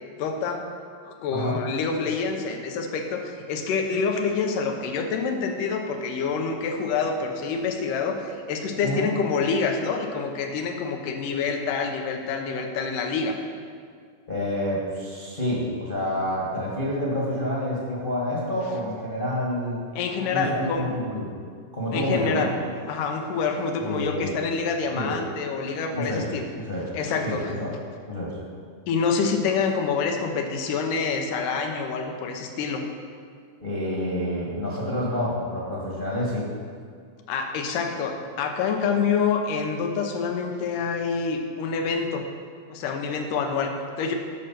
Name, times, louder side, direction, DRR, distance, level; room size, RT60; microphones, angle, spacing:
voice 1, 0.2-0.6 1.1-13.4 20.0-20.9 21.9-22.5 22.9-26.5 26.9-27.6 28.9-32.8 37.3-42.2 42.7-44.2, left 5 dB, 85° left, 4 dB, 2.5 m, -27 dB
voice 2, 14.3-19.8 20.2-21.4 21.7-22.5 23.8-24.4 24.9-25.1 25.9-26.2 26.5-26.9 27.2-27.7 28.1-28.4 33.6-36.5, left 1 dB, 25° left, -5 dB, 1.2 m, -28 dB
10.5 x 6.6 x 5.8 m, 2.1 s
omnidirectional pair, 3.7 m